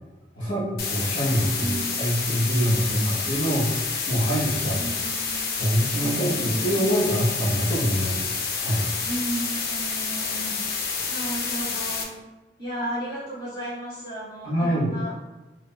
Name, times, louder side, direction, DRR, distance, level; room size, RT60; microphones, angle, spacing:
voice 1, 0.3-3.7 4.1-4.8 5.6-8.3 8.5-8.9 14.4-14.9, equal, 90° left, -6 dB, 1.4 m, -25 dB
sound 1, 0.8-12.0, left 5 dB, 55° left, 0.4 m, -29 dB
voice 2, 1.6-2.1 4.7-5.5 5.9-6.9 9.0-10.6 11.1-12.2 12.6-15.2, right 1 dB, 25° left, -8 dB, 1.3 m, -34 dB
3.3 x 2.8 x 2.2 m, 1.1 s
head